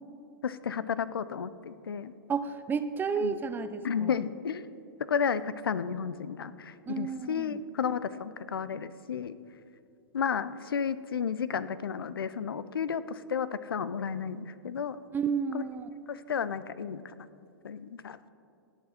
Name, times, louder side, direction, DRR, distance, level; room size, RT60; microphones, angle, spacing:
voice 1, 0.4-2.1 3.2-3.3 3.8-4.6 5.0-9.4 10.1-15.0 15.5-15.6 16.1-17.3 17.6-18.2, left 7 dB, 85° left, 15 dB, 0.5 m, -32 dB
voice 2, 2.3-4.1 6.9-7.6 15.1-15.9, right 6 dB, 15° right, 11 dB, 0.6 m, -32 dB
17.0 x 8.8 x 4.3 m, 2.6 s
hypercardioid pair, 115°, 12 cm